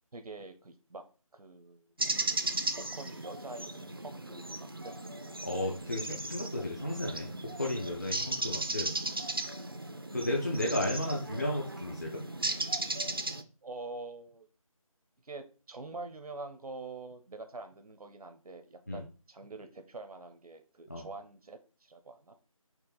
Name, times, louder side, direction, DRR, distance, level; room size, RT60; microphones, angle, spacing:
voice 1, 0.1-1.0 1.3-1.9 2.8-5.0 6.5-6.7 9.6-9.8 10.5-11.1 13.6-14.5 15.2-22.3, right 3 dB, 90° right, 7 dB, 0.8 m, -46 dB
sound 1, 2.0-13.4, right 2 dB, 40° right, 0.4 m, -36 dB
voice 2, 5.4-7.3 7.5-8.9 10.1-12.2 18.9-19.0 20.9-21.0, left 1 dB, 30° left, -1 dB, 0.5 m, -33 dB
4.5 x 2.9 x 3.9 m, 0.36 s
figure-of-eight pair, 175°, 18 cm